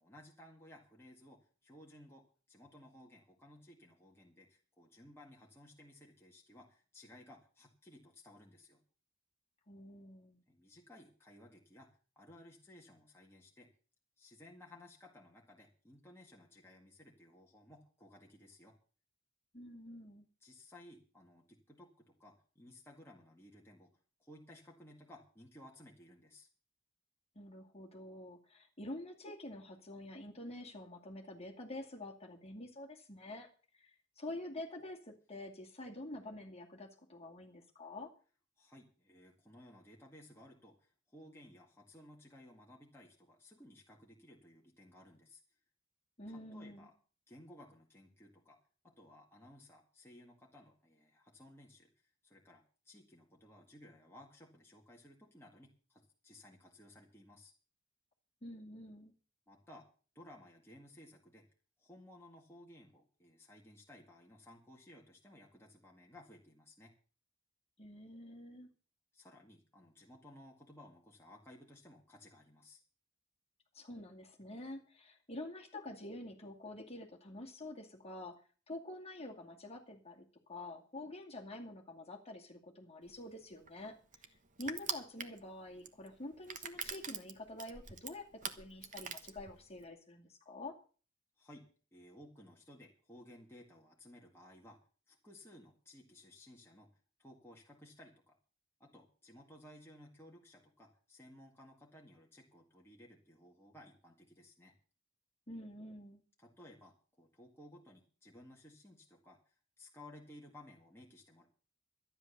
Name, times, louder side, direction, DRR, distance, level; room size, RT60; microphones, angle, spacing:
voice 1, 0.0-8.8 10.5-11.9 12.2-13.7 14.2-18.7 20.4-23.9 24.2-26.5 38.6-45.4 46.3-46.9 47.3-48.6 48.8-57.5 59.5-59.9 60.1-61.4 61.8-66.9 69.1-72.8 91.4-94.8 95.1-96.9 97.2-98.4 98.8-104.7 106.4-111.5, left 1 dB, 10° left, -2 dB, 1.9 m, -58 dB
voice 2, 9.7-10.4 19.5-20.3 27.3-33.5 33.7-38.1 46.2-46.9 58.4-59.1 67.8-68.7 73.7-78.3 78.7-83.9 84.6-90.7 105.5-106.2, left 1 dB, 30° left, 2 dB, 2.3 m, -47 dB
Crushing, 83.1-89.9, right 6 dB, 40° right, 1.3 m, -45 dB
12.5 x 10.0 x 6.7 m, 0.40 s
head